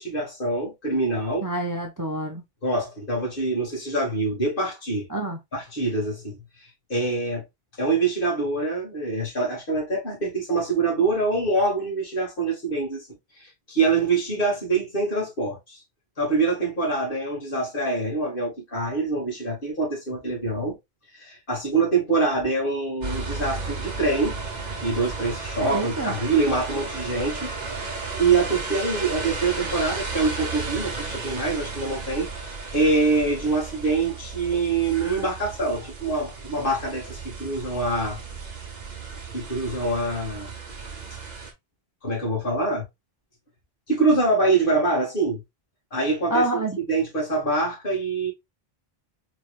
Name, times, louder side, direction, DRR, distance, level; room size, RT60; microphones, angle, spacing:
voice 1, 0.0-1.5 2.6-5.1 5.5-6.4 6.9-7.4 7.8-13.1 13.4-15.8 16.2-20.8 21.1-24.4 24.8-27.5 28.2-38.2 39.3-40.5 42.0-42.8 43.9-45.4 45.9-46.5 46.9-48.3, right 3 dB, 60° left, 2.1 m, -25 dB
voice 2, 1.4-2.4 5.1-5.4 25.6-26.1 46.3-46.8, right 1 dB, 25° right, 0.5 m, -27 dB
sound 1, 23.0-41.5, right 4 dB, 45° right, 1.0 m, -34 dB
4.4 x 3.1 x 2.4 m
omnidirectional pair, 1.0 m